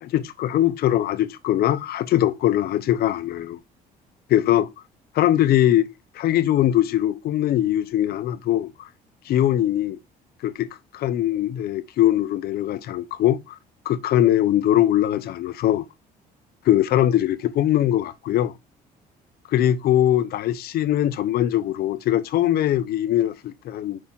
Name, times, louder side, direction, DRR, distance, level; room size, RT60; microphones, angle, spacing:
voice 1, 0.0-3.6 4.3-4.7 5.1-8.9 9.3-10.0 10.4-10.7 10.9-13.6 13.9-15.8 16.7-18.5 19.5-24.0, left 12 dB, 65° left, 0.8 m, -21 dB
6.3 x 4.8 x 4.4 m
cardioid pair, 110°, 17 cm